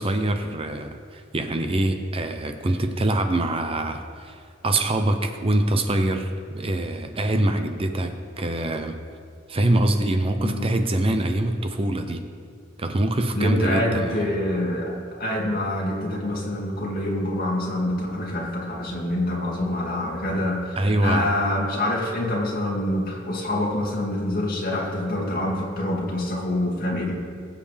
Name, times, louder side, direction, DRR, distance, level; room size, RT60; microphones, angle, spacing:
voice 1, 0.0-9.0 9.5-12.2 12.8-14.3 20.8-21.3, right 1 dB, 30° right, 6 dB, 0.7 m, -24 dB
voice 2, 13.3-14.9 15.2-27.1, left 1 dB, 50° left, -3 dB, 2.4 m, -26 dB
21.5 x 7.6 x 3.4 m, 2.2 s
head